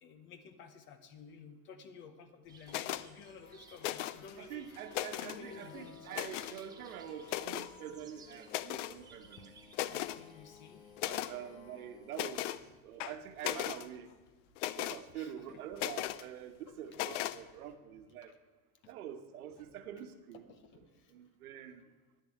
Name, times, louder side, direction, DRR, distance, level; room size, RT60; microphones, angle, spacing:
voice 1, 0.0-4.7 5.2-6.1 9.9-10.9 12.6-12.8 15.1-15.6 16.7-17.0 18.2-18.4 18.8-18.9 20.3-21.1, left 6 dB, 25° left, 10 dB, 0.8 m, -53 dB
sound 1, 2.5-11.4, right 5 dB, 10° right, 0.5 m, -62 dB
sound 2, 2.7-3.1 3.8-4.3 4.7-5.4 6.1-6.6 7.3-7.7 8.5-9.0 9.4-9.5 9.7-10.2 11.0-11.3 12.1-12.6 13.0-13.8 14.6-15.0 15.8-16.2 16.9-17.4, left 14 dB, 60° left, 0.5 m, -37 dB
sound 3, 3.4-12.3, left 8 dB, 75° left, 1.2 m, -57 dB
voice 2, 4.4-9.5 9.9-10.0 11.0-12.4 12.8-14.1 14.8-18.3 18.9-20.4 21.1-21.8, right 10 dB, 90° right, 9 dB, 1.3 m, -46 dB
10.5 x 6.7 x 8.5 m, 1.3 s
supercardioid pair, 160°, 42 cm